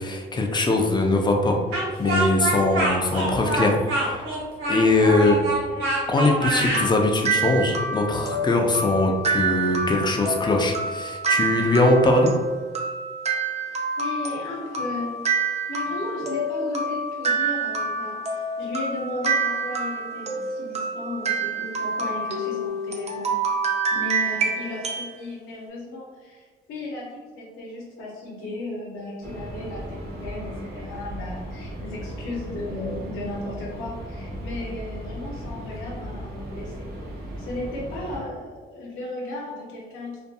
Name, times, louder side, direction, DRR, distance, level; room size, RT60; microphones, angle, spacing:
voice 1, 0.0-1.6 2.0-4.2 4.7-5.4 6.1-12.3, left 2 dB, 20° left, 1 dB, 0.4 m, -21 dB
Speech, 1.7-6.9, right 2 dB, 90° right, 0.8 m, -25 dB
sound 1, 6.2-25.1, right 3 dB, 35° right, 0.4 m, -27 dB
voice 2, 13.5-23.4 23.9-36.9 37.4-40.2, left 2 dB, 90° left, -4 dB, 0.6 m, -35 dB
sound 2, 29.2-38.2, equal, 50° right, 1.1 m, -36 dB
2.6 x 2.5 x 2.3 m, 1.4 s
cardioid pair, 90°, 20 cm